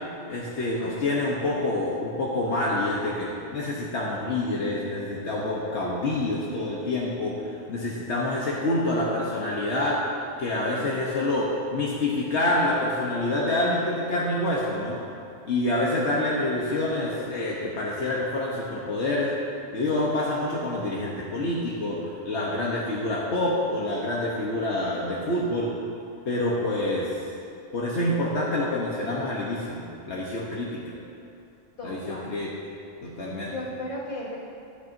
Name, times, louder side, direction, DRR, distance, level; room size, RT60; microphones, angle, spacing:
voice 1, 0.3-7.4 7.7-10.0 10.4-15.0 15.4-19.3 19.7-22.0 22.2-25.7 26.3-27.1 27.7-31.0 31.8-32.5 33.0-33.5, left 1 dB, 80° left, -5 dB, 1.4 m, -27 dB
voice 2, 10.6-10.9 31.8-32.3 33.5-34.4, left 1 dB, 50° left, -7 dB, 2.3 m, -36 dB
14.0 x 10.5 x 2.7 m, 2.6 s
omnidirectional pair, 1.1 m